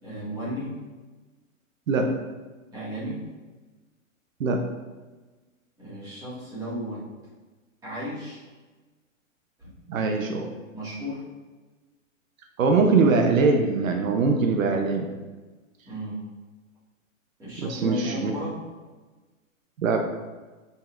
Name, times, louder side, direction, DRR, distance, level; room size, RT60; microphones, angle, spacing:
voice 1, 0.0-0.7 2.7-3.2 5.8-7.1 7.8-8.4 9.6-9.8 10.7-11.2 15.9-16.3 17.4-18.6, equal, 10° right, -10 dB, 2.1 m, -34 dB
voice 2, 1.9-2.2 4.4-4.7 9.9-10.5 12.6-15.1 17.6-18.3 19.8-20.0, right 4 dB, 70° right, 3 dB, 1.0 m, -22 dB
9.1 x 5.6 x 2.6 m, 1.3 s
hypercardioid pair, 170°, 41 cm